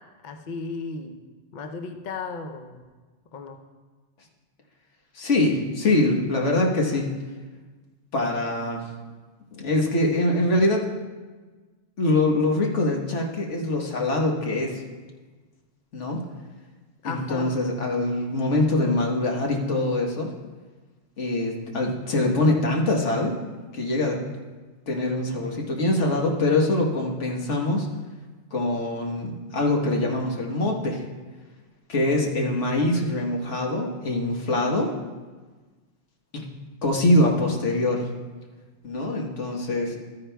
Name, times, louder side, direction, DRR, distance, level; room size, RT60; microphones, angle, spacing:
voice 1, 0.2-1.2 1.5-2.8 3.3-3.6 17.0-17.5, left 4 dB, 50° left, 5 dB, 0.7 m, -34 dB
voice 2, 5.1-7.1 8.1-8.8 9.5-10.8 12.0-14.8 15.9-16.2 17.0-20.3 21.2-23.3 23.7-24.2 24.9-27.9 28.5-31.0 31.9-34.9 36.3-36.4 36.8-38.1 38.8-40.0, left 2 dB, 80° left, 0 dB, 1.5 m, -23 dB
13.5 x 9.3 x 2.2 m, 1.3 s
omnidirectional pair, 1.2 m